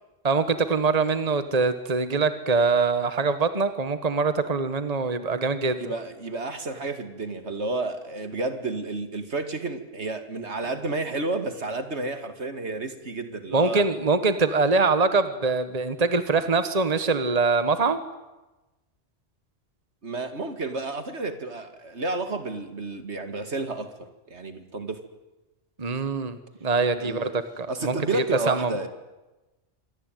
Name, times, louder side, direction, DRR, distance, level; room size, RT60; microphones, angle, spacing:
voice 1, 0.2-5.9 13.5-18.0 25.8-28.7, right 4 dB, 35° right, 11 dB, 1.5 m, -24 dB
voice 2, 5.8-13.8 20.0-25.0 27.0-27.3 27.7-28.9, right 2 dB, 65° right, 9 dB, 2.6 m, -31 dB
26.5 x 21.5 x 9.2 m, 1.1 s
omnidirectional pair, 1.2 m